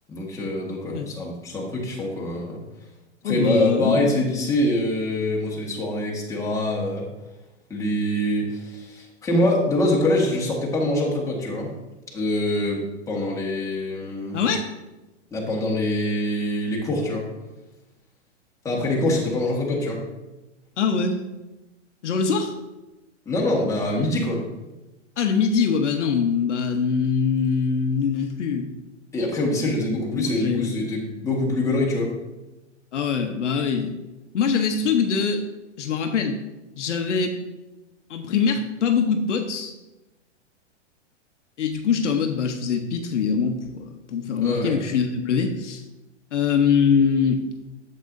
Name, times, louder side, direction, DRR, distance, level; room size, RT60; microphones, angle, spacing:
voice 1, 0.1-2.6 3.2-7.1 7.7-11.7 12.1-14.4 15.3-17.3 18.7-20.0 23.3-24.4 29.1-32.1 44.4-44.8, left 1 dB, 10° left, -3 dB, 1.6 m, -24 dB
voice 2, 3.2-4.3 14.3-14.7 20.8-21.2 22.0-22.6 25.2-28.7 29.9-30.7 32.9-33.9 34.3-35.4 35.8-36.4 36.8-37.4 38.1-39.7 41.6-45.8 46.3-47.4, left 6 dB, 70° left, 5 dB, 1.0 m, -23 dB
8.1 x 7.6 x 2.6 m, 1.0 s
hypercardioid pair, 130°, 37 cm